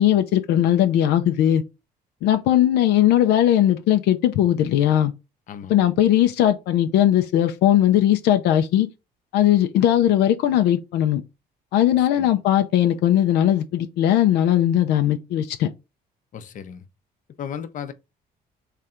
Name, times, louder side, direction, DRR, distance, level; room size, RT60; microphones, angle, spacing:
voice 1, 0.0-1.6 2.2-5.1 5.7-8.9 9.3-11.2 11.7-15.7, left 11 dB, 85° left, 0.6 m, -19 dB
voice 2, 5.5-5.8 11.9-12.3 16.3-16.8 17.4-17.9, left 8 dB, 50° left, 0.7 m, -35 dB
3.8 x 3.3 x 4.3 m
cardioid pair, 110°, 17 cm